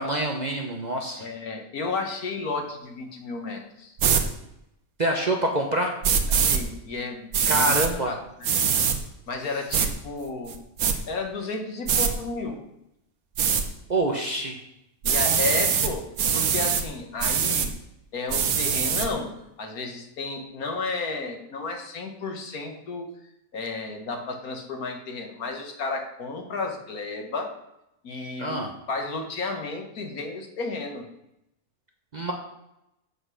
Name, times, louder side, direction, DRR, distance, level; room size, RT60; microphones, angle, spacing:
voice 1, 0.0-1.2 5.0-6.0 7.5-8.2 13.9-14.6 28.4-28.7 32.1-32.3, right 1 dB, 35° right, 2 dB, 0.9 m, -26 dB
voice 2, 1.2-3.9 6.3-8.5 9.3-10.6 11.1-12.6 15.0-16.1 16.3-17.7 18.1-19.3 19.6-23.1 23.5-27.5 28.0-28.6 28.9-31.0, left 3 dB, 80° left, 3 dB, 1.8 m, -32 dB
sound 1, 4.0-4.2 6.0-6.6 7.3-7.9 8.4-9.0 9.7-9.9 10.5-10.9 11.9-12.1 13.4-13.6 15.0-15.9 16.2-16.8 17.2-17.7 18.3-19.1, right 7 dB, 75° right, 1.4 m, -23 dB
7.7 x 6.3 x 6.3 m, 0.85 s
omnidirectional pair, 1.5 m